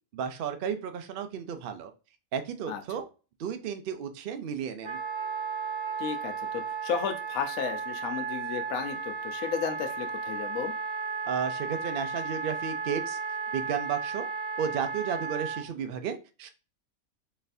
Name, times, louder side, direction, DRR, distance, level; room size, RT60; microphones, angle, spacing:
voice 1, 0.1-1.9 2.3-3.1 3.4-5.0 11.3-13.2 13.5-14.3 14.6-16.5, right 7 dB, 75° right, 7 dB, 0.5 m, -33 dB
Wind instrument woodwind instrument, 4.8-15.6, right 5 dB, 25° right, 0.6 m, -34 dB
voice 2, 6.0-10.7, left 7 dB, 80° left, 5 dB, 1.1 m, -33 dB
4.1 x 3.2 x 2.6 m, 0.33 s
omnidirectional pair, 1.5 m